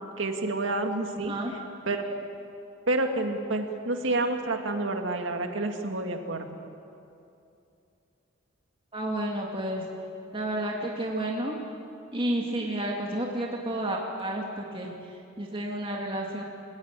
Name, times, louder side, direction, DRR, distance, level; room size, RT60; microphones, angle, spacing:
voice 1, 0.2-1.3 1.9-2.2 2.9-6.5, right 2 dB, 75° right, 4 dB, 2.2 m, -29 dB
voice 2, 1.2-1.5 8.9-9.9 10.3-11.6 12.1-16.4, right 1 dB, 25° right, -1 dB, 2.3 m, -31 dB
29.0 x 16.0 x 9.1 m, 2.7 s
head